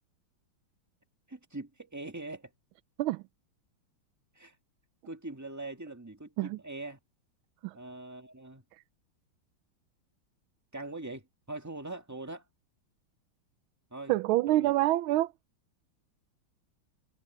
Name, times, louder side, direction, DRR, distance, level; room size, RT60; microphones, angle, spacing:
voice 1, 1.3-2.5 4.4-4.6 5.1-7.0 7.7-8.6 10.7-12.5 13.9-14.1 14.5-14.7, right 2 dB, 10° right, 1.8 m, -42 dB
voice 2, 14.1-15.3, right 16 dB, 80° right, 1.4 m, -26 dB
omnidirectional pair, 2.3 m